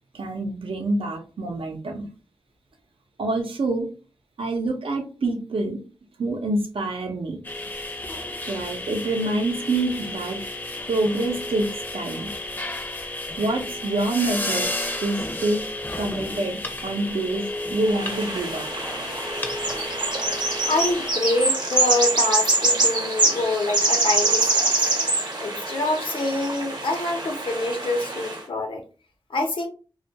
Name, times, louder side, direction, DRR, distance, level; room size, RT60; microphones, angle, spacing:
voice 1, 0.1-2.1 3.2-3.9 4.4-5.8 6.2-7.4 8.5-10.4 10.9-12.3 13.4-14.7 15.0-15.6 15.9-18.6, right 2 dB, 85° right, 3 dB, 0.6 m, -26 dB
sound 1, 7.4-21.1, left 2 dB, 20° left, 0.5 m, -32 dB
sound 2, 17.9-28.4, right 2 dB, 55° right, 0.7 m, -24 dB
voice 2, 20.6-24.7 25.4-28.8 29.3-29.7, left 2 dB, 75° left, 4 dB, 0.7 m, -26 dB
2.3 x 2.2 x 2.8 m, 0.34 s
wide cardioid pair, 70°, 9 cm